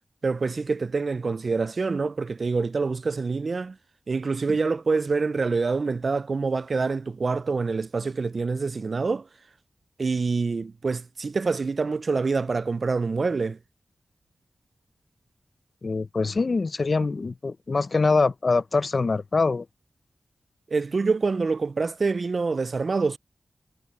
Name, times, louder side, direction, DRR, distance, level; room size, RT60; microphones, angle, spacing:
voice 1, 0.2-3.8 4.1-9.3 10.0-13.6 20.7-23.2, right 4 dB, 55° right, 0.3 m, -26 dB
voice 2, 15.8-19.7, left 4 dB, 50° left, 0.5 m, -24 dB
wide cardioid pair, 105°, 0 cm